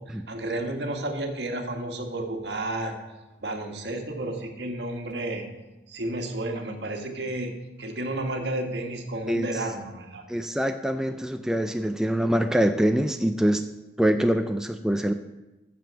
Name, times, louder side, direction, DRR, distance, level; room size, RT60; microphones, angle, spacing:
voice 1, 0.1-3.0 3.4-5.5 5.9-10.2, right 1 dB, 70° right, 3 dB, 1.5 m, -32 dB
voice 2, 10.3-13.6 14.0-15.1, equal, 5° right, 6 dB, 0.3 m, -24 dB
9.5 x 6.9 x 6.8 m, 1.0 s
head